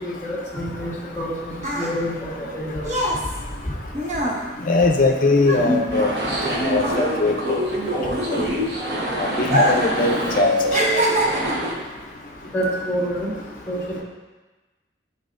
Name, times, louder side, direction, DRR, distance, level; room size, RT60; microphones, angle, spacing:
voice 1, 0.0-2.9 12.5-13.3 13.7-14.0, equal, 10° left, -11 dB, 1.4 m, -27 dB
sound 1, 1.2-6.5 6.7-8.9 9.4-10.0 10.3-11.7 12.4-12.6, equal, 40° right, 0.8 m, -25 dB
voice 2, 4.7-6.1 6.6-7.6 9.2-11.0, left 3 dB, 45° left, 3 dB, 0.5 m, -20 dB
sound 2, 5.9-11.7, equal, 65° right, 1.1 m, -25 dB
10.0 x 4.2 x 2.6 m, 1.2 s
head